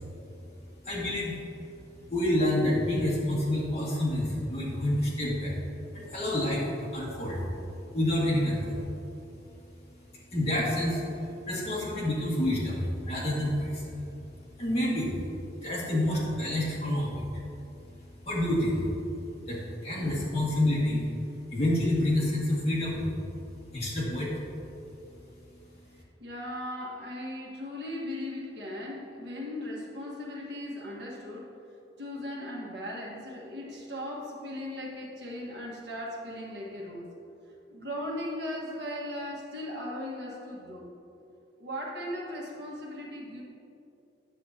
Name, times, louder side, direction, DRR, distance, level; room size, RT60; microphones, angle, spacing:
voice 1, 0.8-1.3 2.1-5.5 5.9-7.4 7.9-8.8 10.3-11.0 11.5-13.9 14.6-15.2 15.6-17.3 18.2-18.8 19.5-21.0 21.5-23.1 23.7-24.3, left 1 dB, 35° left, -7 dB, 1.8 m, -28 dB
voice 2, 26.2-31.5 32.0-37.1 37.7-40.9 41.6-43.4, left 1 dB, 65° right, -3 dB, 1.5 m, -38 dB
9.8 x 6.5 x 2.8 m, 2.8 s
head